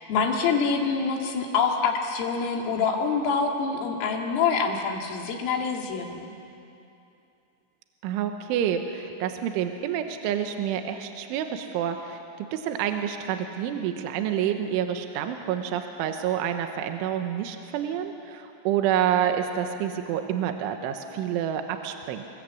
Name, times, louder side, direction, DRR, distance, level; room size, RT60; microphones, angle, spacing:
voice 1, 0.1-6.3, left 5 dB, 80° left, 1 dB, 4.8 m, -26 dB
voice 2, 8.0-22.3, right 9 dB, 80° right, 6 dB, 3.4 m, -28 dB
28.0 x 20.5 x 8.4 m, 2.7 s
omnidirectional pair, 5.9 m